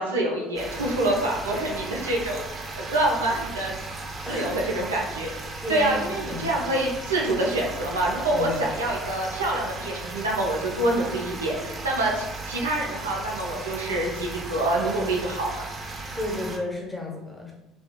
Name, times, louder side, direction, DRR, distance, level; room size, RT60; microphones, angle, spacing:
voice 1, 0.0-2.4 2.8-3.7 4.3-5.3 5.7-15.5, right 1 dB, 75° right, -2 dB, 0.5 m, -26 dB
sound 1, 0.6-16.6, right 3 dB, 30° right, 0.6 m, -36 dB
voice 2, 4.2-4.6 5.6-6.6 8.3-8.6 16.1-17.5, left 2 dB, 10° left, -1 dB, 0.9 m, -32 dB
4.2 x 2.8 x 2.2 m, 0.98 s
figure-of-eight pair, 60°, 0 cm